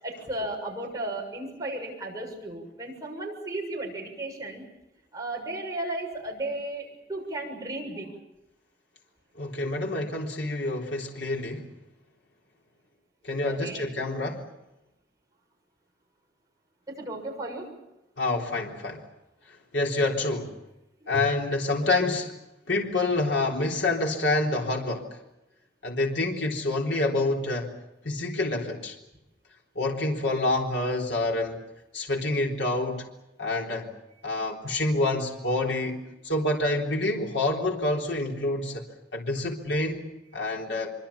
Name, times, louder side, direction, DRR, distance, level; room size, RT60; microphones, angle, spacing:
voice 1, 0.0-4.7 5.1-8.1 13.4-13.9 16.9-17.7 21.0-21.1, right 1 dB, 20° right, -1 dB, 7.0 m, -34 dB
voice 2, 9.4-11.7 13.2-14.5 18.2-19.0 19.7-20.5 21.1-22.3 22.7-25.0 25.8-27.7 28.0-29.0 29.8-31.6 31.9-33.1 33.4-33.9 34.2-38.8 39.1-40.9, left 2 dB, 90° left, 0 dB, 3.8 m, -27 dB
25.0 x 25.0 x 7.2 m, 0.93 s
head